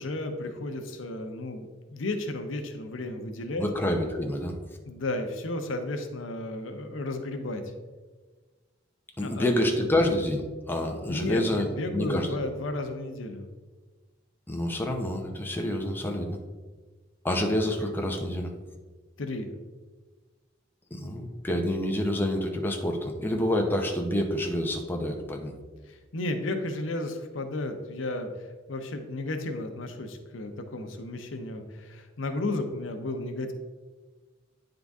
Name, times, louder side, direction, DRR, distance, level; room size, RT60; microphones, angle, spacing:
voice 1, 0.0-3.6 4.9-7.6 9.2-9.5 9.8-9.9 11.1-13.5 19.2-19.5 25.9-33.5, left 2 dB, 85° left, 6 dB, 0.7 m, -33 dB
voice 2, 3.6-4.5 9.2-12.4 14.5-16.4 17.2-18.5 20.9-25.5, left 1 dB, 10° left, 1 dB, 0.7 m, -28 dB
9.4 x 3.9 x 3.5 m, 1.3 s
head